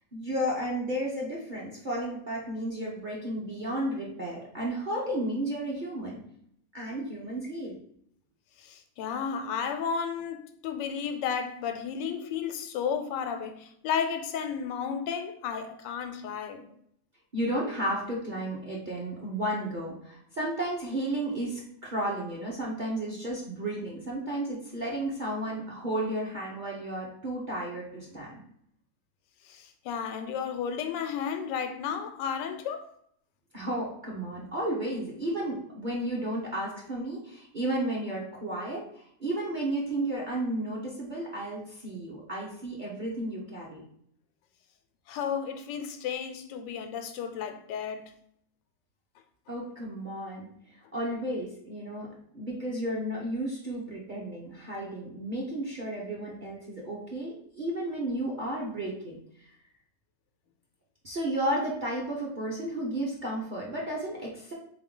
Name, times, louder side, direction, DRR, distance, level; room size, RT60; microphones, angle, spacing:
voice 1, 0.1-6.2 6.7-7.8 17.3-28.4 33.5-43.8 49.5-50.5 50.9-59.2 61.0-64.5, right 1 dB, 40° right, 0.7 m, -33 dB
voice 2, 8.6-16.6 29.4-32.9 45.1-48.1, left 7 dB, 90° left, 1.3 m, -33 dB
3.9 x 3.7 x 3.7 m
omnidirectional pair, 1.9 m